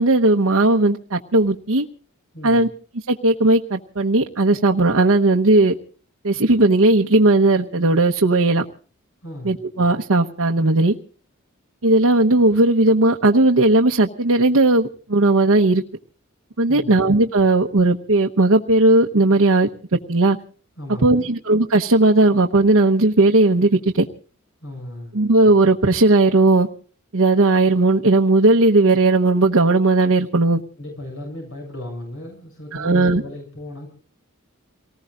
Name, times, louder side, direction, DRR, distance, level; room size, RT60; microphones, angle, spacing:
voice 1, 0.0-1.8 2.4-2.7 3.1-5.7 6.2-8.6 9.4-10.9 11.8-15.8 16.6-20.4 21.0-24.0 25.1-26.7 27.1-30.6 32.7-33.2, right 2 dB, 80° right, 1.0 m, -16 dB
voice 2, 2.3-2.7 9.2-9.6 16.7-17.1 20.8-21.3 24.6-25.2 30.8-33.9, left 1 dB, 65° left, 7.5 m, -35 dB
29.0 x 19.5 x 2.5 m
head